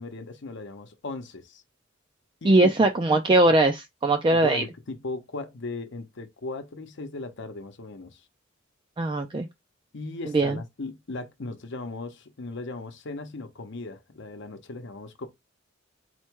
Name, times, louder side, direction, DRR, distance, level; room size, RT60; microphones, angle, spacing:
voice 1, 0.0-1.6 2.4-2.7 4.3-8.3 9.9-15.3, left 3 dB, 60° left, 0.8 m, -37 dB
voice 2, 2.4-4.6 9.0-9.5 10.3-10.6, right 2 dB, 25° right, 0.4 m, -20 dB
4.3 x 2.2 x 4.5 m
head